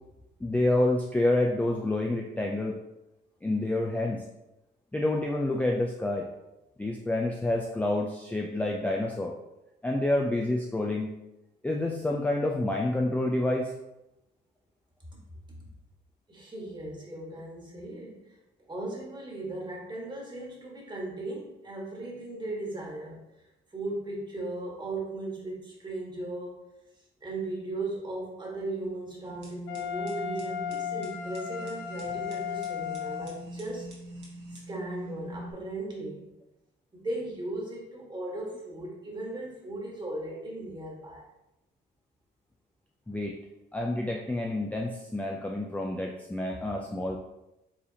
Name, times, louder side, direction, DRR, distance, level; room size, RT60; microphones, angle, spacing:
voice 1, 0.4-2.8 3.4-4.2 4.9-6.3 6.8-9.3 9.8-11.1 11.6-13.7 43.1-43.3 43.7-47.2, left 1 dB, 5° left, 0 dB, 0.4 m, -28 dB
voice 2, 16.3-18.4 18.7-23.2 23.7-26.6 27.2-33.9 34.5-36.3 36.9-41.2, right 2 dB, 20° right, -3 dB, 1.5 m, -37 dB
sound 1, 29.2-35.5, right 1 dB, 60° right, 1.4 m, -43 dB
Wind instrument woodwind instrument, 29.7-33.4, left 8 dB, 80° left, 0.5 m, -35 dB
4.8 x 3.3 x 2.8 m, 0.92 s
cardioid pair, 90°, 20 cm